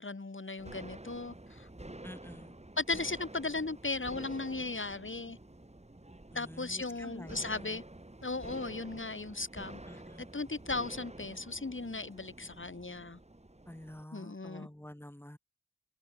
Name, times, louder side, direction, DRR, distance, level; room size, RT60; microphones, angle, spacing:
voice 1, 0.0-1.7 2.8-5.4 6.3-7.8 8.2-9.8 10.2-13.2 14.1-14.7, left 3 dB, 40° left, 2.8 m, -37 dB
sound 1, 0.6-14.0, right 1 dB, 20° right, 4.1 m, -49 dB
voice 2, 2.0-2.5 6.3-7.8 9.8-10.2 13.7-15.4, left 1 dB, 10° left, 3.4 m, -49 dB
wide cardioid pair, 65°, 29 cm